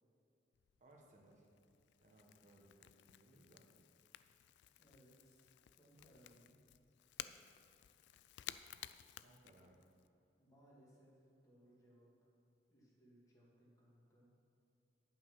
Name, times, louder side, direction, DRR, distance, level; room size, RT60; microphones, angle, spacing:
Crackle / Crack, 0.5-10.1, left 12 dB, 75° left, 0.3 m, -56 dB
voice 1, 0.8-1.5 2.0-3.6 9.2-9.8, right 1 dB, 45° right, 0 dB, 1.3 m, -65 dB
voice 2, 4.8-6.6 10.4-12.3 12.7-14.3, equal, 20° left, -5 dB, 2.2 m, -67 dB
10.5 x 5.7 x 5.6 m, 2.7 s
head